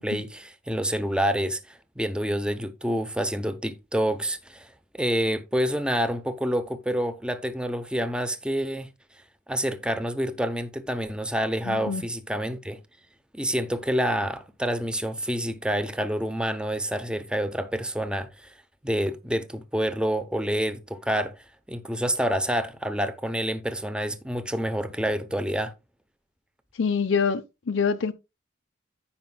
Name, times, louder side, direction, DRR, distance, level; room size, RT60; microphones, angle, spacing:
voice 1, 0.0-8.9 9.5-12.8 13.3-18.5 18.8-25.7, equal, 5° right, 0.6 m, -28 dB
voice 2, 11.7-12.0 26.7-28.1, left 5 dB, 80° left, 0.6 m, -26 dB
15.0 x 5.1 x 2.2 m
head